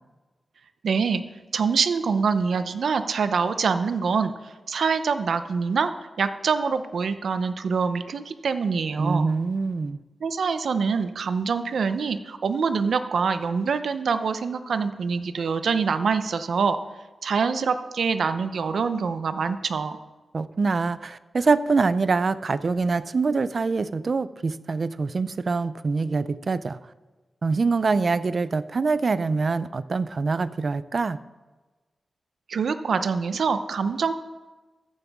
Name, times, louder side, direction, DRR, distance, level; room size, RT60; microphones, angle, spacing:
voice 1, 0.8-1.2 1.5-5.9 6.2-9.3 10.2-16.8 17.2-20.0 32.5-34.1, right 5 dB, 80° right, 10 dB, 0.7 m, -25 dB
voice 2, 9.0-10.0 20.3-26.8 27.4-31.2, right 4 dB, 45° right, 15 dB, 0.4 m, -24 dB
14.0 x 9.7 x 3.6 m, 1.2 s
wide cardioid pair, 145°, 0 cm